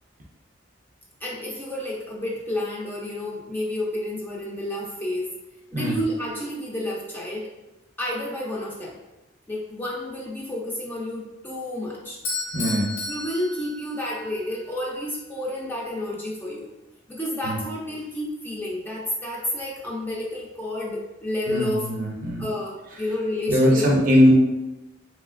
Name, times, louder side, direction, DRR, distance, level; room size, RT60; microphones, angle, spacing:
voice 1, 1.2-5.3 5.7-7.5 8.0-9.0 9.5-12.2 13.1-16.7 17.1-21.9 22.4-24.3, left 1 dB, 10° left, -4 dB, 0.4 m, -30 dB
Bell / Doorbell, 12.2-14.3, left 3 dB, 75° left, 0.7 m, -32 dB
voice 2, 12.5-12.9 17.4-17.6 21.5-22.5 23.5-24.3, left 1 dB, 45° right, -1 dB, 0.5 m, -20 dB
3.1 x 2.8 x 2.4 m, 1.0 s
head